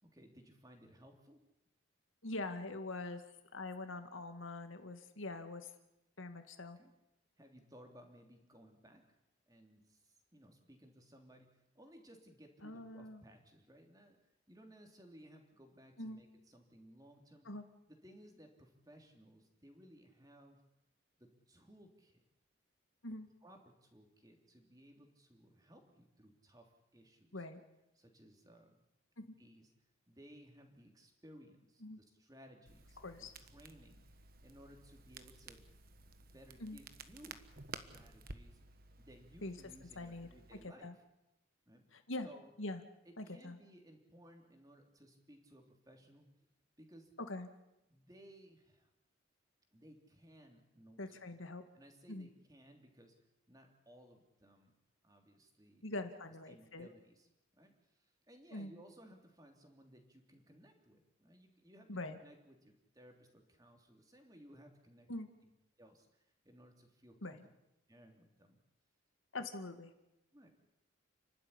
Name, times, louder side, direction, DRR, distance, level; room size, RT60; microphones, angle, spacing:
voice 1, 0.0-1.4 6.8-6.9 7.4-9.2 9.5-17.5 17.9-20.6 21.2-22.2 23.4-27.4 27.9-28.8 29.4-29.7 30.1-35.6 36.2-37.4 37.7-38.6 39.0-41.0 41.7-41.9 42.2-42.5 43.0-46.3 46.8-47.1 47.9-48.9 49.7-51.2 51.7-53.1 53.5-54.7 55.0-55.9 56.5-57.3 57.5-65.1 65.4-65.5 65.8-67.4 67.9-68.6 70.3-70.7, equal, 20° right, 3 dB, 3.3 m, -60 dB
voice 2, 2.2-3.2 3.5-5.7 6.2-6.8 12.6-13.2 16.0-16.2 17.5-17.6 23.0-23.3 27.3-27.6 29.2-29.3 31.8-32.0 33.0-33.3 36.6-36.8 39.4-39.5 40.0-40.3 40.6-40.9 41.9-42.3 42.6-42.8 43.2-43.6 47.3-47.5 51.0-51.6 52.1-52.3 55.8-56.9 58.5-58.7 61.9-62.2 65.1-65.3 67.2-67.4 69.3-69.9, left 2 dB, 85° left, 8 dB, 2.2 m, -43 dB
Crackle, 32.7-40.7, right 4 dB, 45° right, 1.3 m, -54 dB
29.5 x 12.5 x 9.9 m, 0.91 s
head